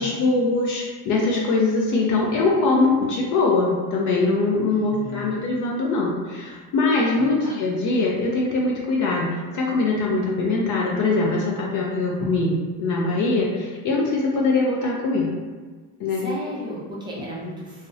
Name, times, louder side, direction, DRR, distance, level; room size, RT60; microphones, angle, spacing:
voice 1, 0.0-15.3 16.0-16.3, left 3 dB, 50° left, -2 dB, 0.4 m, -22 dB
voice 2, 4.7-5.5 7.2-7.6 16.1-17.9, right 1 dB, 10° right, -6 dB, 0.4 m, -36 dB
2.4 x 2.1 x 2.5 m, 1.4 s
cardioid pair, 120°, 41 cm